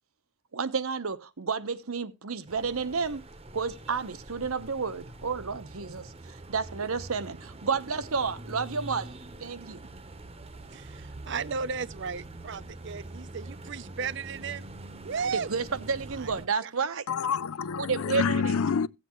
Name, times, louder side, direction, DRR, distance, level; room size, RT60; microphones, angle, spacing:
voice 1, 0.5-3.2 3.5-9.1 9.4-9.8 15.2-17.1 17.8-18.6, right 5 dB, 85° right, 0.9 m, -31 dB
sound 1, 2.5-16.5, right 2 dB, 30° right, 0.9 m, -44 dB
voice 2, 10.7-14.7 15.0-15.5 16.1-16.3 16.6-17.0, right 5 dB, 55° right, 0.5 m, -35 dB
voice 3, 17.1-18.9, left 6 dB, 85° left, 0.5 m, -27 dB
16.0 x 7.9 x 3.0 m
head